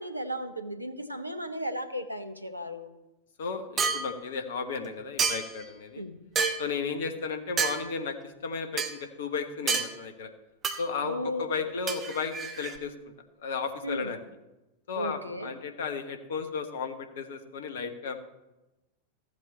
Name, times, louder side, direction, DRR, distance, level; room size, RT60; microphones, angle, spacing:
voice 1, 0.0-2.9 6.0-6.2 11.0-11.7 13.8-14.1 14.9-15.5, equal, 85° right, 8 dB, 0.9 m, -35 dB
voice 2, 3.4-6.0 6.6-10.3 10.8-12.9 13.4-14.2 14.9-18.2, left 5 dB, 60° left, 7 dB, 1.2 m, -34 dB
sound 1, 3.8-4.1 5.2-5.6 6.4-6.7 7.6-7.8 8.8-8.9 9.7-9.9 10.6-10.8 11.9-12.8, right 5 dB, 25° right, 1.0 m, -28 dB
14.0 x 7.9 x 4.3 m, 1.0 s
figure-of-eight pair, 90°, 0 cm